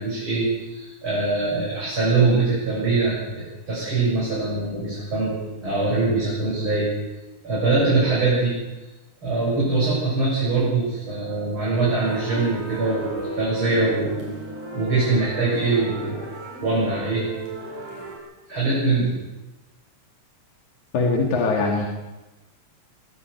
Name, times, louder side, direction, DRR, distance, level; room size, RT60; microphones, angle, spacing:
voice 1, 0.0-6.9 7.4-8.6 9.2-14.3 14.7-16.3 16.6-17.3 18.5-19.1, right 3 dB, 40° right, -6 dB, 7.8 m, -23 dB
sound 1, 12.0-18.2, right 2 dB, 85° right, 6.7 m, -35 dB
voice 2, 20.9-21.9, left 3 dB, 80° left, 0 dB, 4.0 m, -21 dB
23.0 x 14.5 x 8.2 m, 1.1 s
omnidirectional pair, 3.4 m